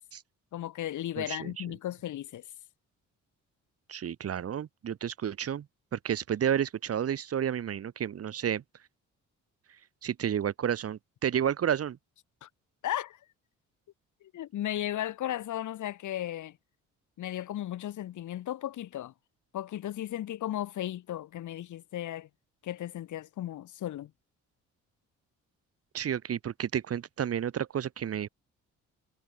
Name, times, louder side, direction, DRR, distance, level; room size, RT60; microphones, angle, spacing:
voice 1, 0.5-2.5 12.4-12.5 12.8-13.2 14.2-16.6 17.2-19.1 19.5-22.3 22.6-24.1, left 12 dB, 75° left, 5.1 m, -35 dB
voice 2, 1.2-1.6 3.9-5.7 5.9-8.6 10.0-12.0 25.9-28.3, right 9 dB, 50° right, 1.4 m, -31 dB
cardioid pair, 90°, 30 cm